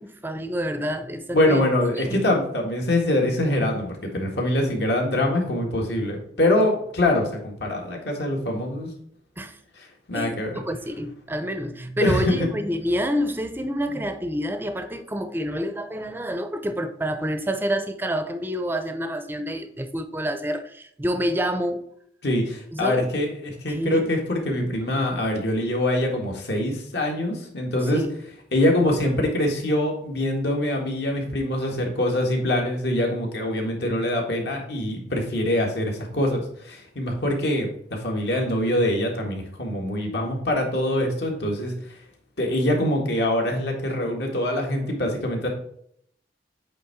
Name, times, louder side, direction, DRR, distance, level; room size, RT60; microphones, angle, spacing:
voice 1, 0.0-1.7 2.0-2.3 9.4-9.6 10.1-21.8 22.7-23.1 23.7-24.1 27.9-28.1, equal, 10° right, 0.6 m, -28 dB
voice 2, 1.3-8.9 9.8-10.6 12.0-12.5 22.2-28.0 28.5-42.0 42.4-45.5, left 1 dB, 65° left, 1.7 m, -24 dB
8.4 x 3.5 x 4.6 m
head